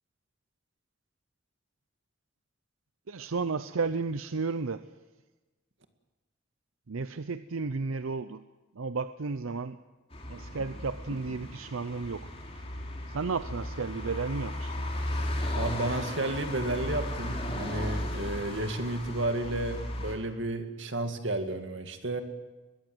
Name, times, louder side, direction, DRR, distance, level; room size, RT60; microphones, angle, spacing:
voice 1, 3.1-4.8 6.9-8.4 8.7-9.8 10.3-12.3 13.1-14.8, right 4 dB, 90° right, 12 dB, 0.7 m, -33 dB
sound 1, 10.1-20.2, left 1 dB, 30° left, 3.6 m, -35 dB
voice 2, 15.5-22.2, right 2 dB, 65° right, 7 dB, 2.2 m, -32 dB
22.5 x 21.0 x 8.0 m, 1.2 s
head